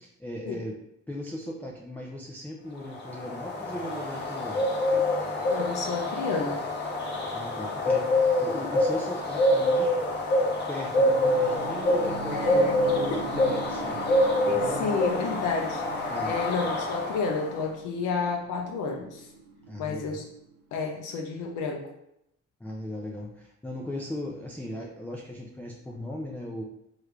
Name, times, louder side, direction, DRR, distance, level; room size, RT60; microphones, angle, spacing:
voice 1, 0.2-0.8 1.1-4.6 7.3-9.9 10.7-14.2 14.5-15.0 16.1-16.4 19.7-20.2 22.6-26.6, left 1 dB, 5° left, -2 dB, 0.4 m, -37 dB
sound 1, 2.9-17.5, left 1 dB, 35° left, 0.8 m, -26 dB
voice 2, 5.5-6.6 12.3-12.8 13.1-13.2 14.5-19.3 19.8-20.2 20.7-21.9, left 4 dB, 85° left, 1 dB, 0.5 m, -31 dB
sound 2, 10.9-20.9, right 4 dB, 85° right, 0.7 m, -41 dB
3.2 x 2.4 x 3.2 m, 0.80 s
cardioid pair, 90°, 30 cm